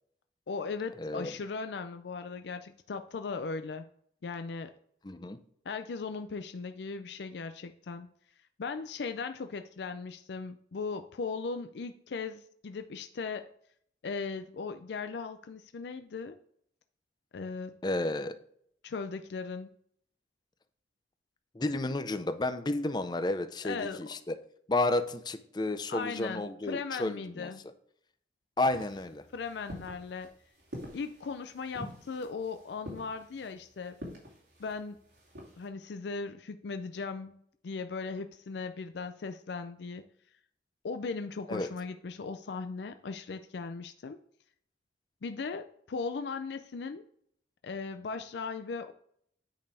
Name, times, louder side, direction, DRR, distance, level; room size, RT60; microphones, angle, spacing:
voice 1, 0.5-3.9 4.2-4.7 5.7-8.1 8.6-13.5 14.0-16.4 17.3-17.8 18.8-19.7 23.6-24.0 25.9-27.6 29.3-30.3 30.9-34.0 34.6-35.0 35.6-37.4 37.6-40.0 40.8-44.2 45.2-47.0 47.6-48.9, left 4 dB, 75° left, 8 dB, 0.4 m, -38 dB
voice 2, 1.0-1.3 5.0-5.4 17.8-18.4 21.5-24.4 24.7-27.5 28.6-29.2 41.5-41.7, left 2 dB, 25° left, 10 dB, 0.5 m, -31 dB
sound 1, 28.6-35.7, equal, 85° right, 2.6 m, -47 dB
9.1 x 5.3 x 3.4 m, 0.66 s
head